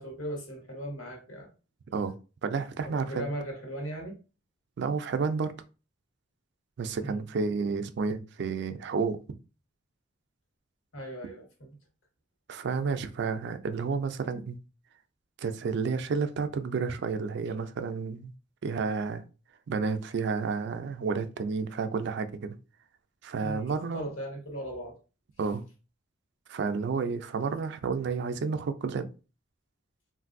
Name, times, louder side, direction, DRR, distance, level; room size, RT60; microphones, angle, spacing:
voice 1, 0.0-1.5 3.0-4.2 7.0-7.2 10.9-11.7 23.4-25.0, right 1 dB, 85° left, 1.2 m, -38 dB
voice 2, 2.4-3.3 4.8-5.5 6.8-9.2 12.5-14.6 15.4-18.3 18.6-19.2 19.7-22.6 23.2-24.0 25.4-25.6 26.5-29.1, right 5 dB, 60° right, 0.3 m, -31 dB
3.2 x 2.5 x 2.5 m
head